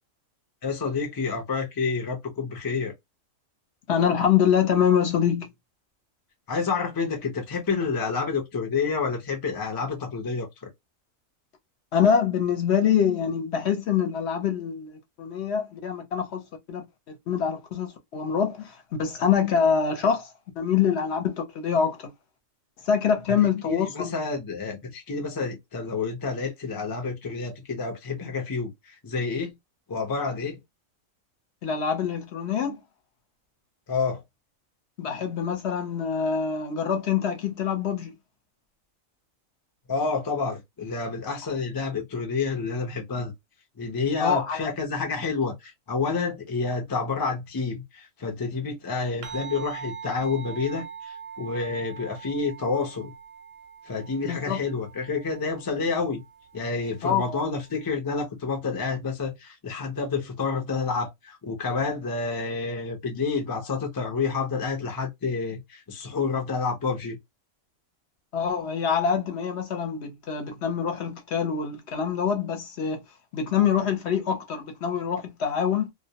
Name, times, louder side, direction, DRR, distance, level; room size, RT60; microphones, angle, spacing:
voice 1, 0.6-2.9 6.5-10.7 23.7-29.5 29.9-30.6 33.9-34.2 39.9-43.3 43.8-53.1 53.9-56.2 56.5-67.2, left 4 dB, 35° left, 0.3 m, -29 dB
voice 2, 3.9-5.5 11.9-22.1 22.8-24.1 31.6-32.8 35.0-38.1 41.4-41.5 44.2-44.7 54.2-54.6 57.0-57.4 68.3-73.0 73.3-75.9, left 7 dB, 60° left, 0.8 m, -25 dB
sound 1, 49.2-57.9, right 7 dB, 60° right, 0.7 m, -43 dB
2.2 x 2.1 x 2.7 m
omnidirectional pair, 1.4 m